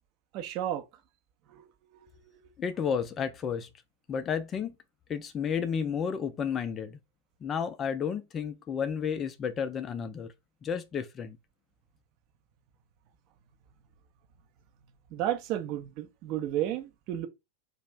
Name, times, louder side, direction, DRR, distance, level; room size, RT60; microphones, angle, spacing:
voice 1, 0.3-0.8 1.5-1.6 15.1-17.3, right 12 dB, 40° right, 0.4 m, -32 dB
voice 2, 2.6-3.7 4.1-4.7 5.1-7.0 7.4-10.3 10.6-11.4, left 7 dB, 25° left, 0.3 m, -32 dB
2.3 x 2.0 x 3.2 m
figure-of-eight pair, 90°, 0 cm